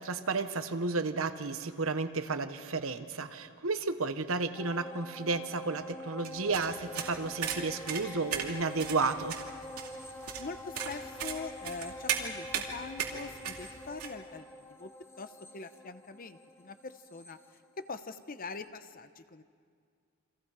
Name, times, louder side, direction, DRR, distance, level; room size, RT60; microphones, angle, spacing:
voice 1, 0.0-9.4, right 3 dB, 65° right, 10 dB, 1.0 m, -32 dB
sound 1, 4.6-18.2 18.6-18.7, left 1 dB, 10° left, 1.1 m, -46 dB
sound 2, 6.2-14.1, right 8 dB, 85° right, 2.5 m, -37 dB
voice 2, 10.4-14.9 15.2-17.4 17.8-19.4, left 4 dB, 40° left, 11 dB, 0.8 m, -43 dB
29.0 x 25.0 x 5.0 m, 2.2 s
head